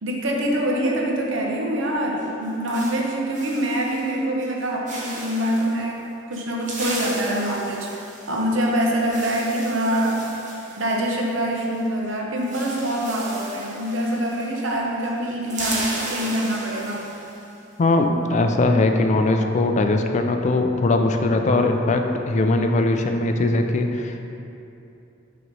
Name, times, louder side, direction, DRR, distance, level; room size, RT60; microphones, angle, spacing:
voice 1, 0.0-10.3 10.6-17.1, right 1 dB, 75° right, -1 dB, 0.8 m, -25 dB
sound 1, 2.2-4.1 4.4-4.6 4.9-5.7 6.3-11.8 12.0-12.1 12.4-14.8 15.0-17.4, right 2 dB, 40° right, 1.1 m, -35 dB
voice 2, 17.8-24.3, left 2 dB, 35° left, 4 dB, 0.3 m, -20 dB
5.8 x 3.0 x 5.3 m, 2.7 s
head